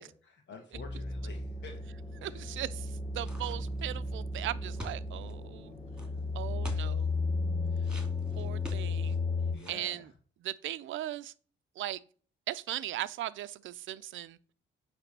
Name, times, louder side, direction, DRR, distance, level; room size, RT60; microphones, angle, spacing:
voice 1, 0.0-1.8 2.2-2.5 9.5-10.1, left 5 dB, 65° left, 1.7 m, -50 dB
sound 1, 0.7-9.5, left 3 dB, 30° left, 3.9 m, -34 dB
voice 2, 2.2-5.7 6.3-7.1 8.4-9.2 9.7-10.1 10.4-11.3 11.8-12.0 12.5-14.4, right 14 dB, 80° right, 0.6 m, -38 dB
sound 2, 3.2-3.9 4.8-5.3 5.9-6.1 6.6-6.9 7.8-9.2 9.5-9.9, equal, 5° right, 2.5 m, -45 dB
9.1 x 3.4 x 6.7 m
cardioid pair, 90°, 20 cm